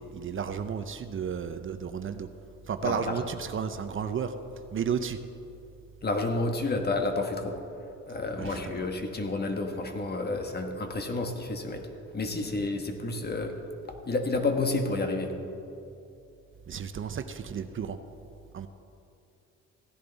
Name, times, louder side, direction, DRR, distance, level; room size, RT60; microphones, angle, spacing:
voice 1, 0.0-2.3 2.7-4.3 4.7-5.2 8.4-8.7 16.7-18.0 18.5-18.7, right 7 dB, 45° right, 9 dB, 0.6 m, -33 dB
voice 2, 2.8-3.2 6.0-7.6 8.1-11.9 12.1-13.6 14.1-15.4, left 2 dB, 35° left, 5 dB, 1.4 m, -30 dB
16.0 x 10.5 x 4.0 m, 2.7 s
cardioid pair, 90°, 30 cm